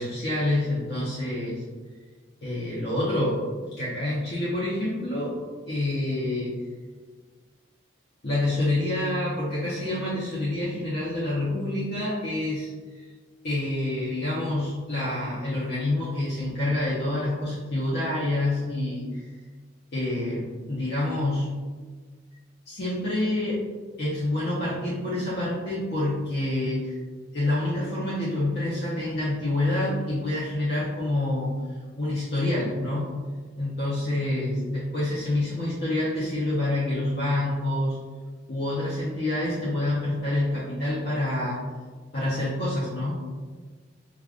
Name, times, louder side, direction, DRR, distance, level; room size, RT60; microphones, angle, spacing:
voice 1, 0.0-1.6 2.4-3.4 3.8-6.6 8.2-13.1 13.4-19.3 19.9-21.5 22.7-23.6 24.0-27.0 27.3-31.6 32.0-33.2 33.6-38.0 38.5-41.7 42.1-43.3, left 1 dB, 55° left, -8 dB, 0.7 m, -27 dB
4.8 x 2.4 x 2.4 m, 1.4 s
head